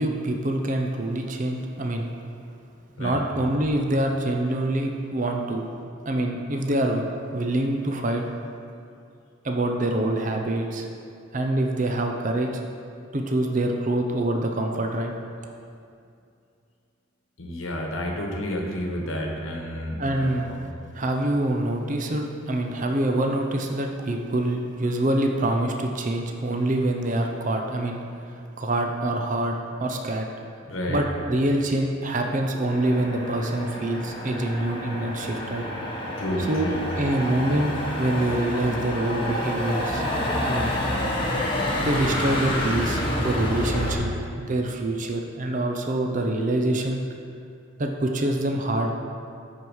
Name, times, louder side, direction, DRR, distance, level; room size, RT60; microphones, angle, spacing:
voice 1, 0.0-2.1 3.0-5.6 6.1-7.0 7.3-8.3 9.4-10.9 11.3-12.5 13.1-15.1 20.0-20.5 20.9-30.3 30.9-35.7 36.5-36.7 37.0-40.0 40.4-40.7 41.8-44.1 44.3-47.0 47.8-48.9, right 1 dB, 40° right, 3 dB, 0.6 m, -25 dB
voice 2, 17.4-20.7 30.7-31.0 36.2-36.8 37.1-37.3, left 1 dB, 75° left, 0 dB, 1.1 m, -30 dB
Motor vehicle (road), 32.7-43.9, left 1 dB, 25° left, 1.2 m, -28 dB
12.5 x 4.7 x 4.8 m, 2.5 s
head